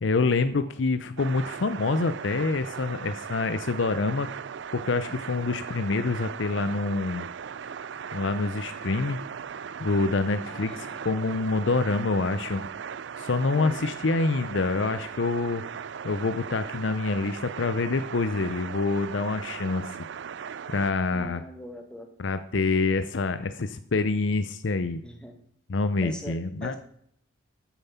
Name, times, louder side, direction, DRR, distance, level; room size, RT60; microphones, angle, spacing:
voice 1, 0.0-4.3 4.7-7.3 8.1-9.2 9.8-12.7 13.2-15.6 16.0-19.9 20.7-21.4 22.2-25.0 25.7-26.7, left 3 dB, 65° left, 11 dB, 0.6 m, -26 dB
sound 1, 1.2-20.9, right 7 dB, 65° right, 0.4 m, -38 dB
voice 2, 10.4-11.0 13.5-13.8 21.1-22.1 25.0-25.4 26.0-26.7, left 1 dB, 5° left, 5 dB, 1.4 m, -42 dB
Guitar, 15.5-15.9, left 1 dB, 30° right, 4.9 m, -57 dB
13.0 x 7.3 x 5.6 m, 0.67 s
head